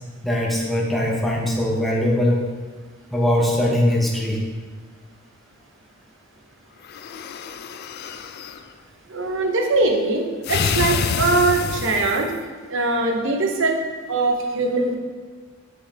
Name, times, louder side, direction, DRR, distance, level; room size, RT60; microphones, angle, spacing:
voice 1, 0.2-2.4 3.1-4.4, left 1 dB, ahead, -4 dB, 1.0 m, -21 dB
sound 1, 6.8-8.6 10.4-12.4, left 6 dB, 50° left, 0.3 m, -27 dB
voice 2, 9.1-12.3 12.7-13.8 14.1-15.0, right 3 dB, 65° right, 2 dB, 0.8 m, -21 dB
6.3 x 5.4 x 3.3 m, 1.5 s
head